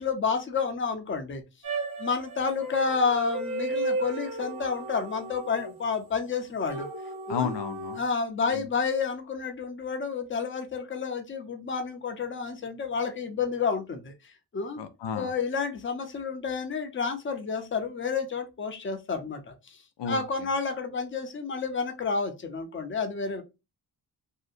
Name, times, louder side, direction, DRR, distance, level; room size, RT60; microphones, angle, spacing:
voice 1, 0.0-1.4 2.0-6.9 7.3-7.5 8.0-14.1 14.5-14.8 15.1-19.8 20.1-23.4, left 5 dB, 30° left, 0.6 m, -30 dB
sound 1, 1.6-6.0 6.7-8.0, right 2 dB, 55° right, 0.9 m, -34 dB
voice 2, 7.3-8.0 8.5-8.7 14.8-15.3 20.0-20.2, left 7 dB, 85° left, 0.5 m, -32 dB
2.8 x 2.1 x 2.4 m
wide cardioid pair, 100°, 41 cm